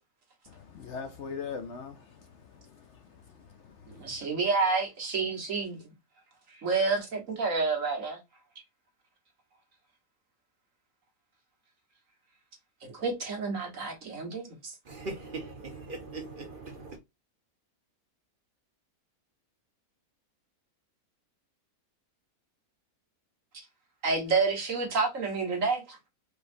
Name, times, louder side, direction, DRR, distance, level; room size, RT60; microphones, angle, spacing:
voice 1, 0.5-4.2, left 6 dB, 60° left, 0.8 m, -42 dB
voice 2, 3.9-5.8 6.6-8.2 12.8-14.7 24.0-26.1, right 4 dB, 60° right, 1.8 m, -29 dB
voice 3, 14.8-17.0, right 3 dB, 40° right, 1.1 m, -40 dB
4.8 x 3.1 x 2.5 m
omnidirectional pair, 1.6 m